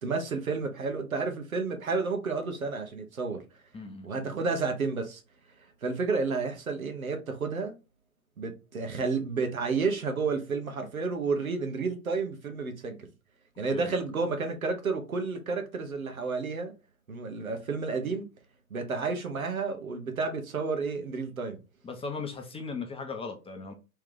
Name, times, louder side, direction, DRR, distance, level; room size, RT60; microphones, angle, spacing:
voice 1, 0.0-3.4 4.0-5.2 5.8-7.7 8.4-13.0 13.6-16.7 17.1-18.3 18.7-21.6, right 4 dB, 85° right, 1.1 m, -31 dB
voice 2, 3.7-4.1 13.7-13.9 21.8-23.7, left 4 dB, 15° left, 0.8 m, -37 dB
3.4 x 3.3 x 3.7 m
figure-of-eight pair, 95°, 41 cm